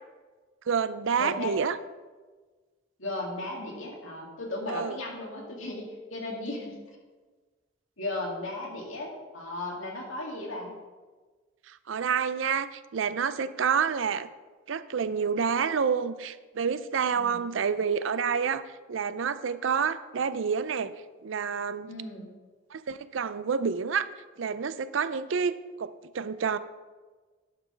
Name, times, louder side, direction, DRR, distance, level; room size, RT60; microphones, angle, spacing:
voice 1, 0.7-1.8 4.7-5.0 11.7-14.3 14.7-20.9 21.2-21.9 22.7-24.1 24.4-26.6, right 6 dB, 75° right, 14 dB, 0.5 m, -28 dB
voice 2, 1.2-1.6 3.0-6.8 8.0-10.7 17.2-17.4 21.9-22.3, left 2 dB, 85° left, -1 dB, 2.4 m, -36 dB
10.0 x 6.1 x 5.2 m, 1.3 s
head